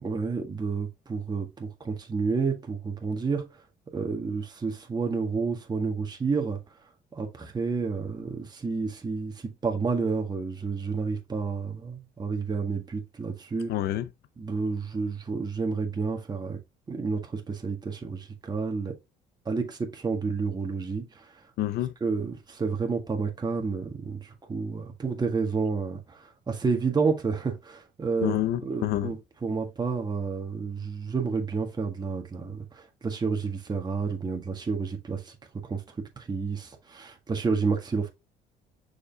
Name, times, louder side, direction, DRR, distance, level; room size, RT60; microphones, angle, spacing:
voice 1, 0.0-3.5 3.9-6.6 7.1-13.7 14.4-16.6 16.9-18.9 19.4-21.3 22.0-28.4 28.6-38.1, right 4 dB, 25° right, 1.6 m, -30 dB
voice 2, 13.7-14.1 21.6-21.9 28.2-29.1, left 13 dB, 75° left, 0.6 m, -27 dB
6.6 x 5.1 x 2.8 m
cardioid pair, 110°, 17 cm